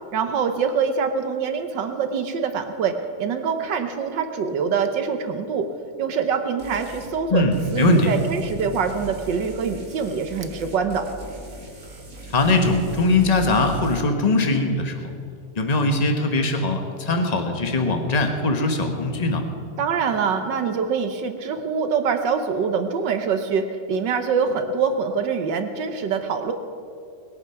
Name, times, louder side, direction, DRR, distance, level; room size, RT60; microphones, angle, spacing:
voice 1, 0.1-5.7 6.0-7.4 7.7-11.1 19.8-26.5, right 6 dB, 60° right, 7 dB, 1.4 m, -24 dB
sound 1, 6.6-7.1 7.5-14.0, equal, 40° right, 2.4 m, -40 dB
voice 2, 7.3-8.1 12.3-14.9 15.5-19.4, left 2 dB, 25° left, 5 dB, 1.0 m, -21 dB
21.0 x 8.8 x 5.8 m, 2.4 s
omnidirectional pair, 2.4 m